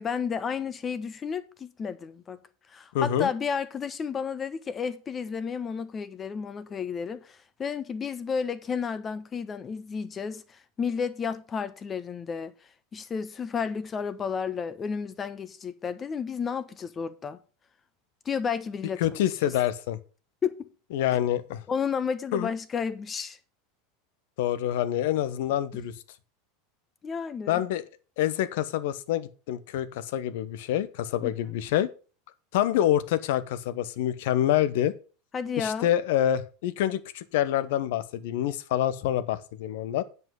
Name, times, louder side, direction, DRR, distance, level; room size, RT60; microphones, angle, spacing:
voice 1, 0.0-2.4 2.7-12.5 12.9-17.4 18.2-19.2 20.4-20.7 21.7-23.4 27.0-27.6 31.2-31.3 35.3-35.9, left 6 dB, 30° left, 1.1 m, -32 dB
voice 2, 2.9-3.3 19.0-20.0 20.9-21.6 22.3-22.5 24.4-25.9 27.5-27.8 28.2-31.9 32.5-34.9 35.6-40.0, left 12 dB, 65° left, 0.9 m, -26 dB
9.1 x 5.5 x 7.5 m
hypercardioid pair, 85°, 0 cm